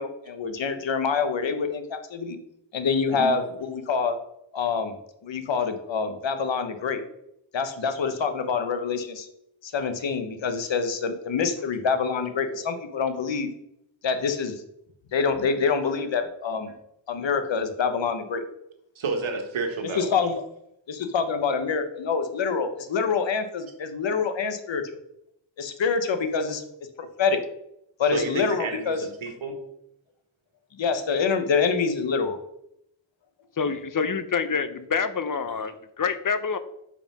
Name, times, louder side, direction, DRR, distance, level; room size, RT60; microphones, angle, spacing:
voice 1, 0.0-2.4 2.7-4.2 4.5-5.0 5.2-7.0 7.5-9.3 9.6-13.5 14.0-14.6 15.1-16.7 17.1-18.4 20.0-20.3 20.9-25.0 25.6-26.6 27.0-27.4 28.0-29.0 30.7-32.4, left 5 dB, 70° left, 8 dB, 1.0 m, -26 dB
voice 2, 18.9-20.2 28.1-29.6 33.7-33.8, right 4 dB, 85° right, 4 dB, 1.5 m, -31 dB
voice 3, 33.6-36.6, left 5 dB, 45° left, 12 dB, 0.7 m, -27 dB
5.3 x 4.9 x 5.9 m, 0.79 s
wide cardioid pair, 75°, 46 cm